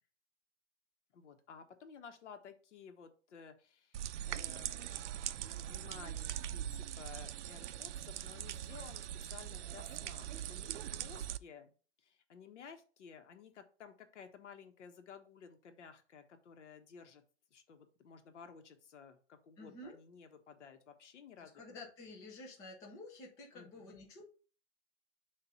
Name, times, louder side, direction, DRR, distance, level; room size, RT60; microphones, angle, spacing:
voice 1, 1.1-5.0 5.4-11.7 12.0-17.2 17.5-21.6 23.5-24.0, left 6 dB, 85° left, 7 dB, 1.3 m, -55 dB
sound 1, 3.9-11.4, right 11 dB, 80° right, 0.5 m, -42 dB
voice 2, 19.6-20.0 21.4-24.2, left 2 dB, 10° left, -1 dB, 0.6 m, -51 dB
6.7 x 2.6 x 5.6 m, 0.38 s
hypercardioid pair, 170°, 35 cm